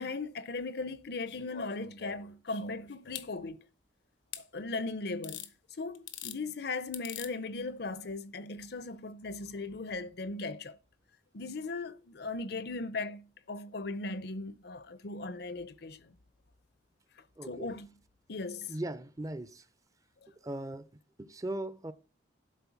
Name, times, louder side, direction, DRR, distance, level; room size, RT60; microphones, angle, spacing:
voice 1, 0.0-3.6 4.4-5.5 5.8-10.8 11.3-16.1 17.5-17.9 18.3-18.8, left 3 dB, 60° left, 0.7 m, -38 dB
sound 1, 1.3-3.3 4.3-4.4 5.2-5.5 5.9-6.4 6.9-7.3 8.6-8.7, left 9 dB, 85° left, 1.0 m, -44 dB
voice 2, 17.4-17.7 18.7-19.6 20.4-20.9 21.2-21.9, right 1 dB, 20° right, 0.6 m, -38 dB
12.0 x 4.3 x 7.1 m
head